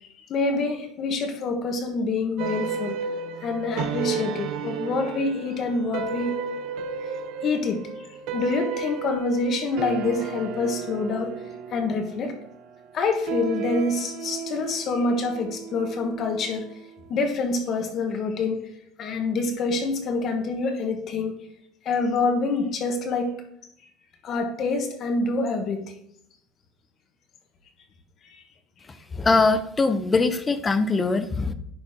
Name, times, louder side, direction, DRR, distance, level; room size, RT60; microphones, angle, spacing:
voice 1, 0.0-3.0 3.4-6.3 7.4-8.1 8.3-11.3 11.7-12.3 12.9-16.7 17.1-18.7 19.0-21.4 21.8-23.3 24.2-25.8 28.2-28.4, left 3 dB, 40° left, 5 dB, 1.3 m, -26 dB
sound 1, 2.4-16.9, right 6 dB, 60° right, 0.7 m, -33 dB
voice 2, 29.1-31.5, left 3 dB, 15° left, 11 dB, 0.6 m, -22 dB
11.0 x 4.1 x 3.7 m, 0.72 s
cardioid pair, 145°, 0 cm